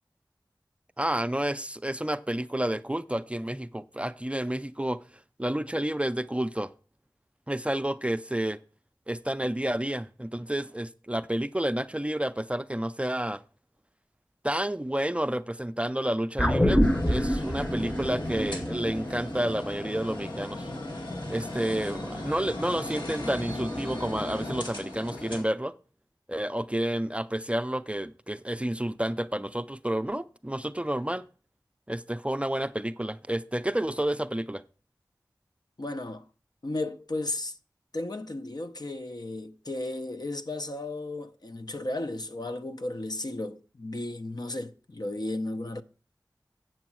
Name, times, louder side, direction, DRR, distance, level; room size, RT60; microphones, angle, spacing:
voice 1, 1.0-5.0 5.4-6.7 7.5-8.6 9.1-13.4 14.4-20.7 21.3-25.7 26.3-31.3 31.9-34.6, right 1 dB, 15° right, 0.4 m, -30 dB
sound 1, 16.4-21.0 21.3-21.4, equal, 15° left, 0.8 m, -27 dB
sound 2, 16.8-25.4, left 1 dB, 80° left, 2.1 m, -37 dB
voice 2, 35.8-36.2 36.6-37.6 37.9-45.8, left 2 dB, 60° left, 0.7 m, -34 dB
7.7 x 7.2 x 6.0 m
wide cardioid pair, 40°, 8 cm